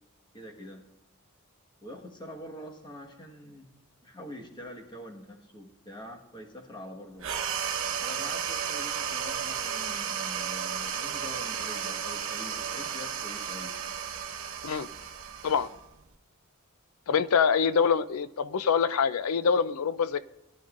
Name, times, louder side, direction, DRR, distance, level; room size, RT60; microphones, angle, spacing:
voice 1, 0.3-0.9 1.8-3.7 4.0-7.3 7.9-13.8, left 1 dB, 20° left, 1 dB, 1.5 m, -45 dB
sound 1, 7.2-16.1, right 8 dB, 65° right, 1.1 m, -33 dB
voice 2, 17.1-20.2, left 6 dB, 80° left, 14 dB, 0.5 m, -25 dB
19.0 x 10.5 x 2.5 m, 0.89 s
head